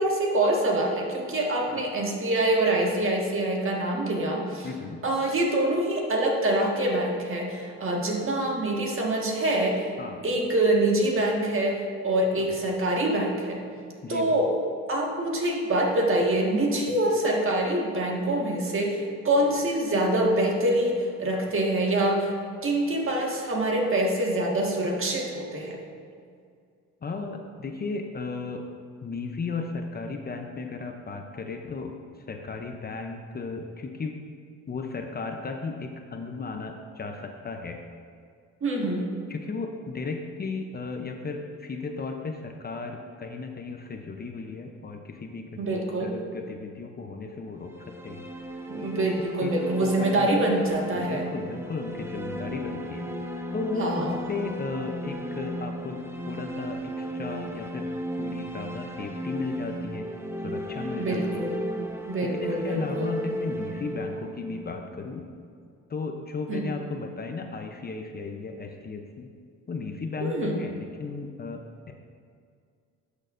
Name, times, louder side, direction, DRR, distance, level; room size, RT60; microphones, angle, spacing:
voice 1, 0.0-4.7 5.0-9.9 10.2-11.8 12.0-13.6 14.1-14.5 14.9-22.3 22.6-25.8 38.6-39.1 45.6-46.1 48.7-51.3 53.8-54.2 61.0-61.7 62.1-63.2 66.5-66.7 70.2-70.6, right 1 dB, 45° right, -1 dB, 1.7 m, -25 dB
voice 2, 4.6-5.0 10.0-10.2 12.4-12.5 14.0-14.3 27.0-28.7 29.0-31.9 32.3-34.1 34.7-37.8 39.3-48.2 49.2-49.5 49.8-50.3 51.0-53.1 53.5-57.9 58.2-60.1 60.4-61.4 62.2-65.3 65.9-69.3 69.7-71.9, left 4 dB, 30° left, 4 dB, 0.6 m, -35 dB
sound 1, 47.6-65.5, equal, 10° right, 0.6 m, -35 dB
12.0 x 6.5 x 2.6 m, 2.2 s
cardioid pair, 90°, 30 cm